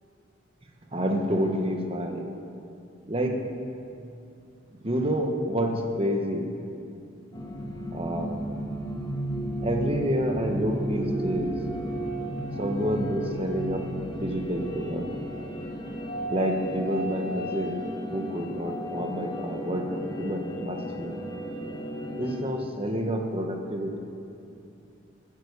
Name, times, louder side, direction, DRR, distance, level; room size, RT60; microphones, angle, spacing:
voice 1, 0.9-2.3 3.1-3.5 4.8-6.5 7.9-8.4 9.6-11.5 12.6-13.9 14.2-15.1 16.3-17.8 18.1-21.2 22.1-24.0, equal, 30° right, 3 dB, 1.5 m, -28 dB
sound 1, 7.3-22.5, equal, 20° left, 1.3 m, -34 dB
14.5 x 9.9 x 8.3 m, 2.6 s
head